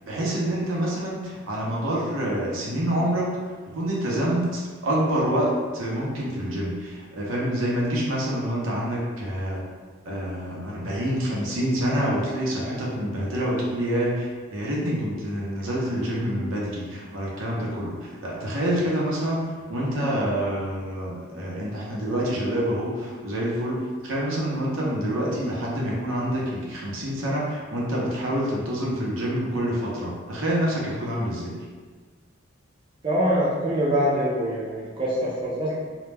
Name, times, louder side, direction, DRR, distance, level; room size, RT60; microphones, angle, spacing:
voice 1, 0.1-3.4 3.7-9.6 10.0-31.6, equal, 85° right, -4 dB, 0.6 m, -27 dB
voice 2, 33.0-35.7, equal, 25° right, -6 dB, 0.4 m, -24 dB
2.1 x 2.1 x 3.2 m, 1.5 s
head